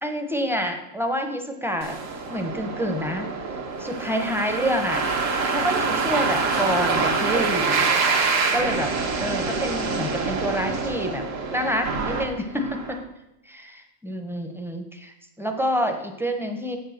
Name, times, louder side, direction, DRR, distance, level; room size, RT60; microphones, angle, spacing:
voice 1, 0.0-2.0 2.3-3.3 3.8-5.1 5.4-7.9 8.5-8.9 9.2-11.2 11.5-13.0 13.5-16.8, equal, 5° right, 5 dB, 0.5 m, -27 dB
sound 1, 1.8-13.0, right 4 dB, 70° right, 1.4 m, -26 dB
8.2 x 5.4 x 6.4 m, 0.87 s
omnidirectional pair, 1.4 m